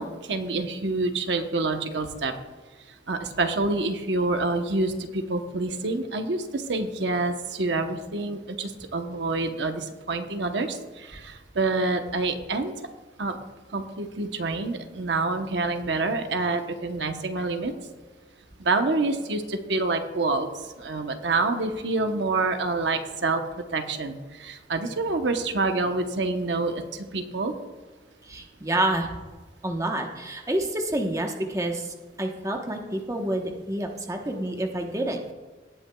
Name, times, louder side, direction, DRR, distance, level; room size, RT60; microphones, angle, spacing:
voice 1, 0.0-2.3 3.1-12.7 13.2-13.4 13.7-17.7 18.6-20.5 20.8-23.4 23.7-27.5, right 3 dB, 90° right, 6 dB, 0.9 m, -27 dB
voice 2, 28.3-29.1 29.6-35.3, right 1 dB, 20° right, 3 dB, 1.0 m, -28 dB
18.0 x 9.0 x 2.3 m, 1.3 s
head